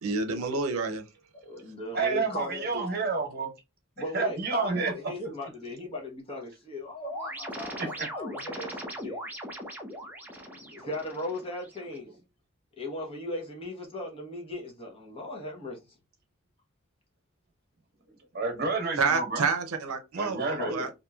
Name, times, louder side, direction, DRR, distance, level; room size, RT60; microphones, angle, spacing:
voice 1, 0.0-1.0 19.0-20.9, right 4 dB, 85° right, 0.6 m, -29 dB
voice 2, 1.3-2.9 4.0-9.2 10.5-12.1 12.8-15.8 20.6-20.9, left 2 dB, 25° left, 0.9 m, -38 dB
voice 3, 1.9-3.5 4.1-4.9 7.8-8.1 18.3-19.4 20.1-20.7, right 4 dB, 45° right, 0.9 m, -29 dB
sound 1, 7.0-12.0, equal, 10° right, 0.5 m, -39 dB
2.9 x 2.6 x 2.3 m
head